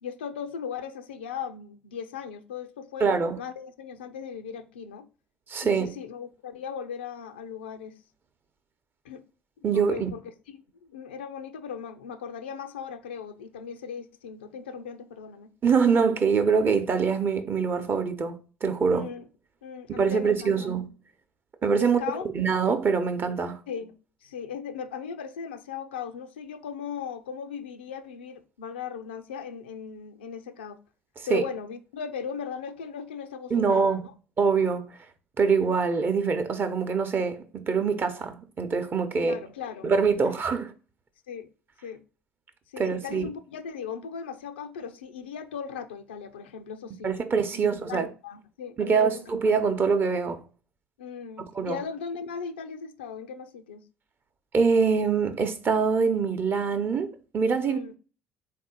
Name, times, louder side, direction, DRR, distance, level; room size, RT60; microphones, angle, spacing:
voice 1, 0.0-3.1 3.4-5.1 5.6-7.9 9.0-9.2 9.6-10.2 10.8-15.5 18.9-19.3 19.6-20.5 21.8-22.3 23.7-23.9 24.2-30.8 31.3-34.0 39.0-39.9 40.2-40.4 41.3-41.5 41.8-42.0 42.7-47.1 47.5-49.2 51.0-53.8 57.6-57.9, left 7 dB, 80° left, 0.4 m, -38 dB
voice 2, 3.0-3.4 5.5-5.9 9.6-10.1 15.6-19.1 19.9-20.9 21.6-22.0 22.3-23.6 31.3-31.4 33.5-34.1 34.4-34.9 35.4-39.4 39.8-40.7 42.8-43.3 47.0-48.1 48.8-50.4 51.5-51.8 54.5-58.0, right 5 dB, 40° right, 0.7 m, -24 dB
3.8 x 2.6 x 3.7 m
hypercardioid pair, 60°, 6 cm